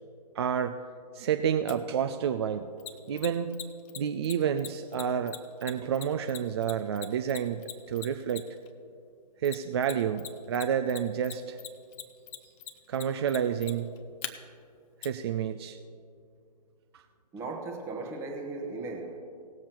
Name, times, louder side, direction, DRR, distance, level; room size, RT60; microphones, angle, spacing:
voice 1, 0.4-0.8 1.1-2.7 3.1-3.5 4.0-7.6 7.9-8.4 9.4-11.6 12.9-13.9 15.0-15.8 16.9-17.0, right 8 dB, 40° right, 8 dB, 0.4 m, -29 dB
Mechanisms, 1.7-1.8 2.8-8.7 9.4-10.3 10.5-14.3 15.0-15.1, left 12 dB, 20° left, 0.6 m, -40 dB
voice 2, 17.3-19.2, right 3 dB, 10° right, 0 dB, 1.0 m, -37 dB
18.0 x 7.3 x 4.4 m, 2.3 s
figure-of-eight pair, 135°, 21 cm